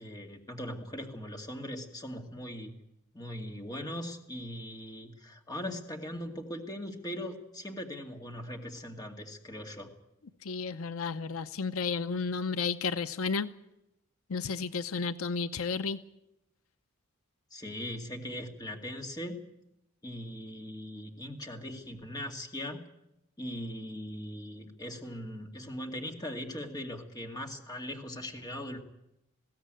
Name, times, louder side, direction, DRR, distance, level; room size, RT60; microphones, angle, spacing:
voice 1, 0.0-2.7 3.1-9.9 17.5-19.4 20.0-22.8 23.4-28.8, equal, 15° left, 2 dB, 2.2 m, -40 dB
voice 2, 10.4-13.5 14.3-16.0, left 5 dB, 75° left, 12 dB, 0.7 m, -32 dB
20.5 x 16.0 x 9.1 m, 0.87 s
head